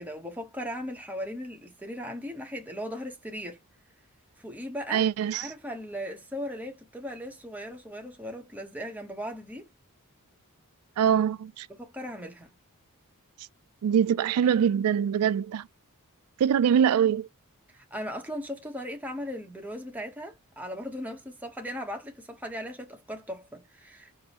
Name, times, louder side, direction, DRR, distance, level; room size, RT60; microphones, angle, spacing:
voice 1, 0.0-3.6 4.4-5.1 5.3-9.7 11.7-12.5 17.7-24.2, equal, 5° right, 0.9 m, -38 dB
voice 2, 4.9-5.5 11.0-11.7 13.8-15.7 16.4-17.3, right 8 dB, 75° right, 0.3 m, -23 dB
4.7 x 2.0 x 2.8 m
head